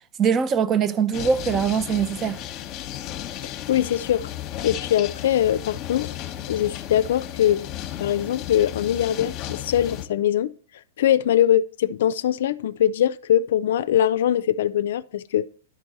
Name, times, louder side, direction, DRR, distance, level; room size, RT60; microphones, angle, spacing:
voice 1, 0.2-2.4, right 6 dB, 30° right, 0.5 m, -22 dB
sound 1, 1.1-10.1, left 11 dB, 40° left, 0.9 m, -34 dB
voice 2, 3.4-4.3 4.6-6.2 6.5-7.7 8.0-10.5 11.0-15.5, left 11 dB, 70° left, 0.4 m, -22 dB
11.5 x 4.6 x 4.0 m
hypercardioid pair, 110°, 0 cm